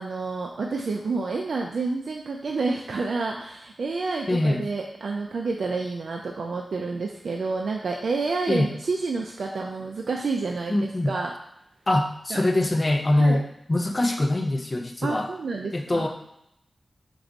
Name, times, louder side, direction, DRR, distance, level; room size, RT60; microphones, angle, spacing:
voice 1, 0.0-11.3 12.3-12.4 13.2-13.4 15.0-16.1, right 3 dB, 85° right, 0 dB, 0.4 m, -29 dB
voice 2, 4.3-4.7 8.5-8.7 10.7-11.1 11.9-15.3 15.7-16.1, left 1 dB, 35° left, 4 dB, 0.5 m, -23 dB
4.6 x 2.5 x 3.9 m, 0.78 s
wide cardioid pair, 80°, 0 cm